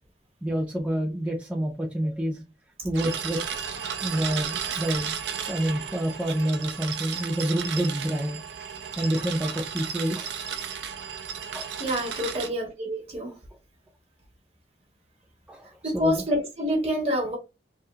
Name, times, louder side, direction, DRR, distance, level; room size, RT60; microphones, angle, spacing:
voice 1, 0.4-2.4 2.8-3.4 4.0-8.7 9.0-10.3 11.5-11.7 13.2-13.3 15.5-16.2, right 1 dB, 5° right, 0.4 m, -28 dB
sound 1, 2.9-12.5, right 7 dB, 75° right, 0.5 m, -34 dB
voice 2, 11.8-13.3 15.8-17.4, equal, 35° right, 1.2 m, -27 dB
3.4 x 2.3 x 2.7 m
head